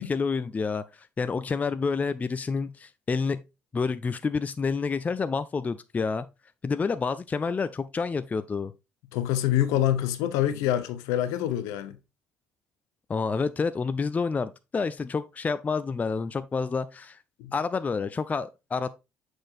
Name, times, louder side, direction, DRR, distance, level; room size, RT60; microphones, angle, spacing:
voice 1, 0.0-3.4 3.7-6.3 6.6-8.7 13.1-17.2 17.5-18.9, left 4 dB, 25° left, 0.4 m, -28 dB
voice 2, 9.1-11.9 17.4-17.5, left 12 dB, 65° left, 0.8 m, -26 dB
6.2 x 6.2 x 2.5 m
figure-of-eight pair, 50°, 6 cm